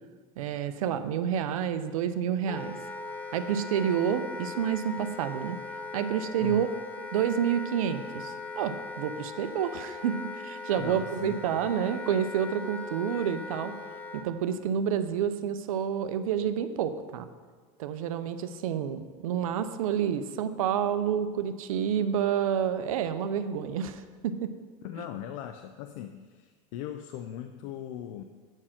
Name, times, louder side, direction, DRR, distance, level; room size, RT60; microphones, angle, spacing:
voice 1, 0.4-2.8 3.3-5.6 5.9-6.7 7.1-13.8 14.1-17.2 17.8-24.6, right 8 dB, 85° right, 11 dB, 0.6 m, -29 dB
Wind instrument woodwind instrument, 2.5-14.3, left 3 dB, 10° left, 0.6 m, -39 dB
voice 2, 10.8-11.6 24.8-28.2, left 10 dB, 65° left, 8 dB, 0.5 m, -39 dB
8.7 x 4.6 x 5.9 m, 1.5 s
supercardioid pair, 130°, 17 cm